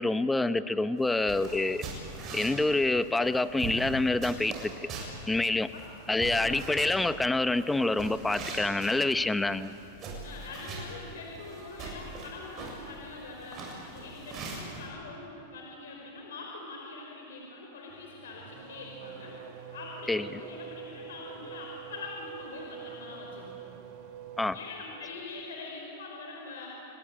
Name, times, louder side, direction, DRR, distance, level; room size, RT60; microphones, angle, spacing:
voice 1, 0.0-1.8 2.3-4.7 5.3-5.7 6.1-9.7 20.1-20.3 24.4-24.6, left 2 dB, 5° left, 12 dB, 0.8 m, -27 dB
sound 1, 1.0-14.9, right 3 dB, 30° right, 7.4 m, -42 dB
voice 2, 6.3-6.7 10.2-19.4 19.7-23.7 24.5-26.7, left 3 dB, 90° left, -1 dB, 5.3 m, -43 dB
Race car auto racing / Accelerating revving vroom, 17.9-25.2, right 8 dB, 50° right, 2.7 m, -46 dB
29.5 x 20.5 x 8.9 m, 2.9 s
supercardioid pair, 145°, 0 cm